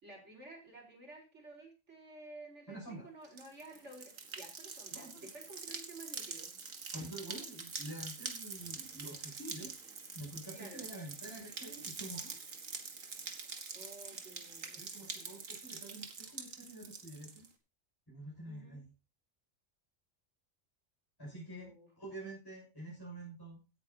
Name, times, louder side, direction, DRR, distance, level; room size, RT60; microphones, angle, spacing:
voice 1, 0.0-6.6 10.5-10.8 13.7-14.8 18.5-18.8 21.5-21.9, right 2 dB, 60° right, 0 dB, 5.0 m, -53 dB
voice 2, 2.7-3.1 4.9-5.3 6.9-9.8 10.1-12.4 14.8-17.4 18.1-18.9 21.2-23.6, right 1 dB, 15° left, -6 dB, 6.7 m, -47 dB
sound 1, 3.2-17.5, right 5 dB, 85° right, 2.1 m, -45 dB
17.0 x 9.5 x 2.9 m, 0.31 s
omnidirectional pair, 1.3 m